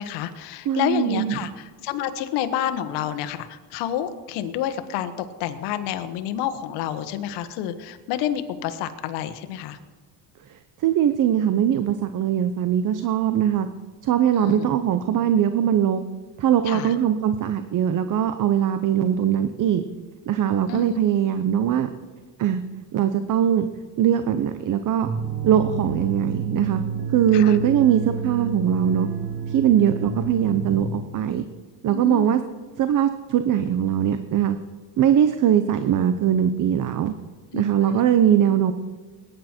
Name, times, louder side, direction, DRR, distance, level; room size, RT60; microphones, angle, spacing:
voice 1, 0.0-5.1 5.4-9.8 14.3-14.6 16.6-16.9 20.7-21.0 27.3-27.6 31.9-32.4 37.5-38.0, left 11 dB, 80° left, 10 dB, 1.4 m, -29 dB
voice 2, 0.7-1.5 10.8-13.7 14.0-16.0 16.4-19.8 20.3-21.9 22.4-22.6 22.9-23.6 24.0-25.1 25.4-26.8 27.1-29.1 29.5-31.4 31.8-32.4 32.8-34.6 35.0-37.1 37.5-38.7, right 9 dB, 50° right, 10 dB, 0.9 m, -21 dB
sound 1, 25.0-30.8, right 5 dB, 85° right, 3.1 m, -29 dB
21.0 x 10.5 x 4.5 m, 1.4 s
cardioid pair, 110°, 41 cm